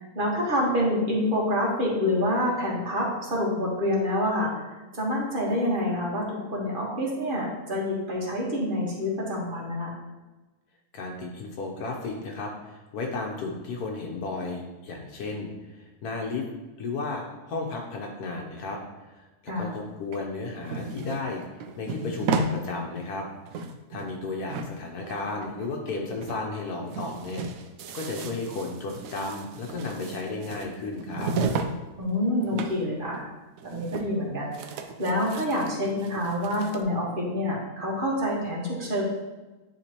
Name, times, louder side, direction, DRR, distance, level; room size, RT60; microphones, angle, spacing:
voice 1, 0.0-4.5 4.9-9.9 19.5-19.7 28.2-28.3 32.0-33.3 33.6-39.0, left 1 dB, 35° right, -4 dB, 1.6 m, -27 dB
voice 2, 10.9-16.4 16.8-18.8 19.1-21.4 21.8-23.3 23.9-27.5 27.9-31.3, left 3 dB, 80° left, 0 dB, 1.3 m, -34 dB
sound 1, 20.1-22.6 23.0-23.1 23.3-24.2 24.5-25.9 26.2-26.4 26.7-31.8 32.0-32.9 33.1-33.2 33.6-34.3 34.5-36.8, right 4 dB, 70° right, 0.9 m, -34 dB
9.7 x 3.5 x 2.9 m, 1.1 s
omnidirectional pair, 1.6 m